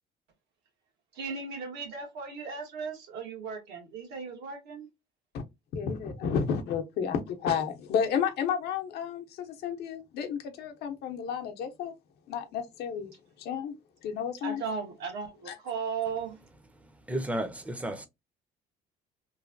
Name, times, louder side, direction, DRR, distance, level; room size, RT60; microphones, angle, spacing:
voice 1, 1.1-4.9 14.4-16.4, right 5 dB, 80° right, 1.2 m, -36 dB
voice 2, 5.7-11.9 12.3-13.1 13.4-13.7 14.0-14.6 15.5-15.6, left 7 dB, 75° left, 0.7 m, -31 dB
voice 3, 17.1-18.1, right 1 dB, 10° right, 0.5 m, -32 dB
3.1 x 2.1 x 2.5 m
cardioid pair, 110°, 17 cm